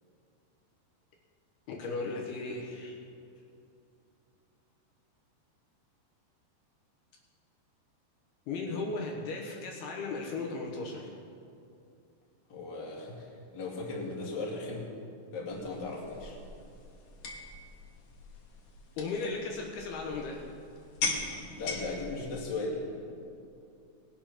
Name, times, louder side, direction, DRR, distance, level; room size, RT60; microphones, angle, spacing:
voice 1, 1.7-2.9 8.5-11.2 19.0-20.5, left 3 dB, 75° left, -1 dB, 2.9 m, -36 dB
voice 2, 12.5-13.3 13.5-14.9 15.3-16.3 21.6-22.8, left 3 dB, 35° left, -4 dB, 2.2 m, -37 dB
sound 1, 15.5-22.5, left 4 dB, 60° left, 1.9 m, -40 dB
19.5 x 7.1 x 5.9 m, 2.6 s
omnidirectional pair, 4.8 m